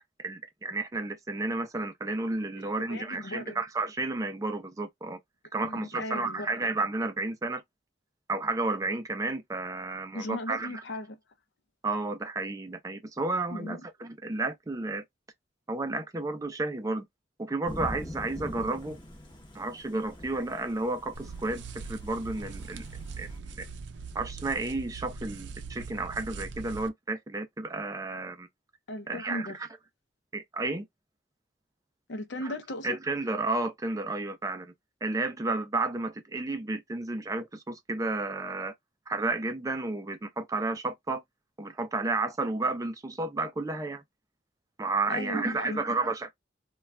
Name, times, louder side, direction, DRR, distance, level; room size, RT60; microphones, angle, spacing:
voice 1, 0.0-5.2 5.5-7.6 8.3-10.8 11.8-15.0 15.7-17.0 17.4-19.0 19.5-22.9 23.2-23.7 24.1-28.5 29.1-29.5 30.3-30.9 32.4-32.5 32.8-34.7 35.0-38.7 39.1-41.2 41.6-44.0 44.8-46.3, right 2 dB, 20° right, 0.4 m, -32 dB
voice 2, 2.8-3.6 5.6-6.5 10.1-11.2 13.5-13.8 28.9-29.6 32.1-32.9 45.1-45.8, left 1 dB, 80° left, 0.6 m, -37 dB
Thunder / Rain, 17.7-23.4, equal, 25° left, 0.7 m, -43 dB
sound 1, 21.1-26.9, right 4 dB, 80° right, 0.5 m, -41 dB
2.3 x 2.3 x 3.1 m
head